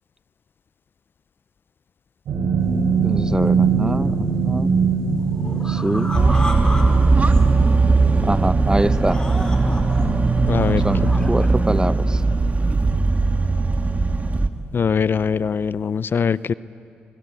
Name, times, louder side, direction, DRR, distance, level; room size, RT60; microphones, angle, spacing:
sound 1, 2.3-13.0 13.3-13.6 14.0-14.1, right 5 dB, 80° right, 4.0 m, -24 dB
sound 2, 2.6-2.7 3.1-4.3 4.6-6.8 7.1-7.8 8.2-8.4 8.9-10.1 10.4-11.5, left 1 dB, 20° left, 4.8 m, -34 dB
voice 1, 3.0-4.7 5.7-6.2 8.2-9.2 10.8-11.0 11.3-12.2, right 1 dB, 15° right, 14 dB, 1.0 m, -24 dB
sound 3, 6.1-14.5, right 3 dB, 35° right, 1.7 m, -18 dB
voice 2, 10.5-10.8 14.7-16.5, left 6 dB, 55° left, 18 dB, 0.5 m, -21 dB
25.0 x 24.0 x 8.4 m, 2.8 s
supercardioid pair, 50°, 4 cm